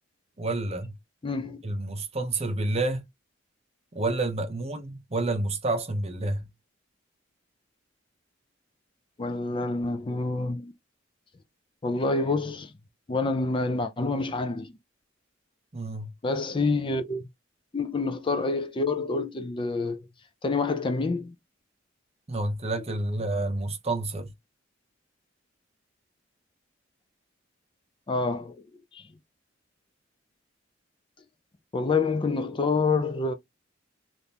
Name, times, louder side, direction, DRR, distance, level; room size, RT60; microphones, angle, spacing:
voice 1, 0.4-0.9 1.6-3.0 3.9-6.4 15.7-16.1 22.3-24.3, right 2 dB, 30° right, 0.7 m, -29 dB
voice 2, 1.2-1.6 9.2-10.7 11.8-12.7 13.1-14.7 16.2-17.2 17.7-20.1 20.4-21.3 28.1-28.6 28.9-29.1 31.7-33.3, left 3 dB, 25° left, 0.4 m, -27 dB
3.6 x 2.5 x 2.8 m
head